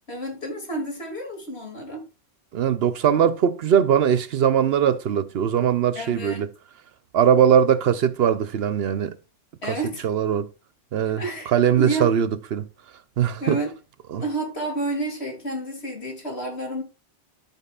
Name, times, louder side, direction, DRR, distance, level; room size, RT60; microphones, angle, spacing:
voice 1, 0.1-2.0 6.0-6.4 9.6-10.1 11.2-12.2 13.4-13.7 14.2-16.8, right 1 dB, 70° left, 2.8 m, -30 dB
voice 2, 2.5-6.5 7.1-9.1 9.7-9.8 10.0-10.5 10.9-11.2 11.5-12.7 13.2-13.6 14.1-14.2, right 8 dB, 65° right, 0.8 m, -20 dB
14.0 x 5.4 x 2.4 m
omnidirectional pair, 1.1 m